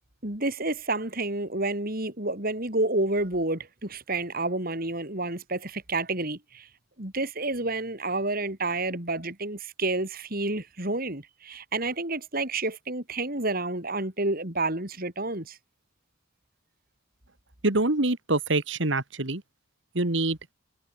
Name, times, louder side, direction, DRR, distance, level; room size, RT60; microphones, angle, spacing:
voice 1, 0.2-6.7 7.0-15.6, right 2 dB, 45° right, 4.3 m, -29 dB
voice 2, 17.6-19.4 20.0-20.4, right 2 dB, 65° right, 2.1 m, -25 dB
head